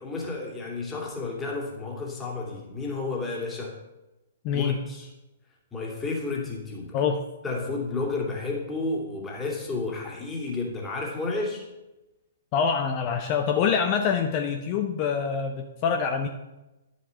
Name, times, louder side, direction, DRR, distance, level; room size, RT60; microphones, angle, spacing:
voice 1, 0.0-3.8 4.5-5.1 5.7-7.0 7.4-11.7, left 3 dB, 15° left, -2 dB, 2.8 m, -31 dB
voice 2, 4.4-4.9 6.9-7.2 12.5-16.3, left 6 dB, 35° left, 5 dB, 0.8 m, -25 dB
11.0 x 7.3 x 5.7 m, 0.99 s
figure-of-eight pair, 120°, 0 cm